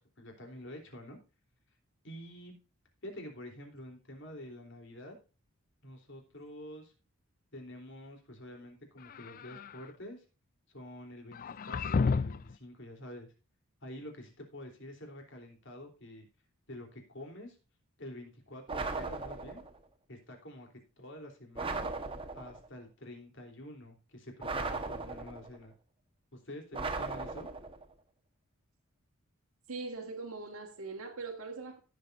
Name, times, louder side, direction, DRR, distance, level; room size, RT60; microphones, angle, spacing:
voice 1, 0.2-1.2 2.0-2.5 3.0-5.2 5.8-6.9 7.5-10.2 10.7-13.3 13.8-16.3 16.7-17.6 18.0-19.6 20.1-20.7 21.0-21.9 22.3-25.7 26.3-27.5, left 1 dB, 60° left, 3.5 m, -47 dB
sound 1, 9.0-9.9 11.3-12.5, left 4 dB, 40° left, 0.4 m, -32 dB
sound 2, 18.7-19.8 21.6-22.7 24.4-25.6 26.7-27.9, right 3 dB, 25° right, 1.2 m, -37 dB
voice 2, 29.7-31.8, right 3 dB, 90° right, 1.8 m, -41 dB
16.5 x 7.6 x 2.6 m
head